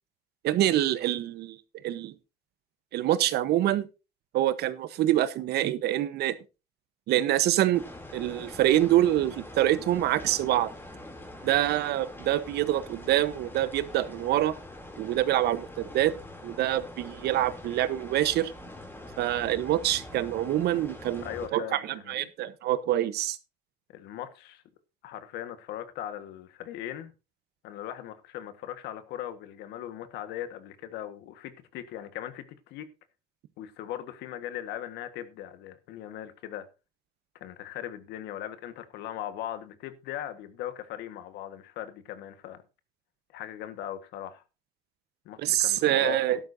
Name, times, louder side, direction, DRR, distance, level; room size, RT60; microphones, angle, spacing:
voice 1, 0.4-1.6 1.8-2.1 2.9-3.9 4.3-6.3 7.1-7.8 8.1-10.7 11.4-14.5 15.0-16.1 16.4-18.5 19.2-23.4 45.4-46.4, right 13 dB, 75° right, 1.1 m, -26 dB
sound 1, 7.7-21.5, left 1 dB, 10° left, 3.1 m, -44 dB
voice 2, 21.2-22.2 23.9-24.6 25.0-27.1 27.6-32.9 33.6-36.7 37.4-42.6 43.3-44.4 45.2-46.2, left 11 dB, 85° left, 1.6 m, -39 dB
13.0 x 11.5 x 2.7 m
cardioid pair, 110°, 17 cm